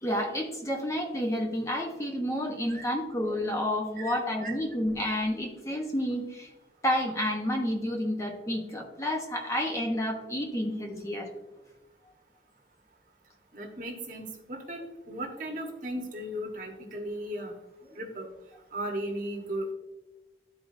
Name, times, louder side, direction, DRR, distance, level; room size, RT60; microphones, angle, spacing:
voice 1, 0.0-6.5 6.8-11.3, equal, 15° left, 1 dB, 1.0 m, -30 dB
voice 2, 4.0-4.5 13.5-14.8 15.1-17.5 17.9-18.3 18.7-19.7, right 1 dB, 45° right, 0 dB, 1.3 m, -36 dB
12.5 x 4.7 x 2.7 m, 1.0 s
head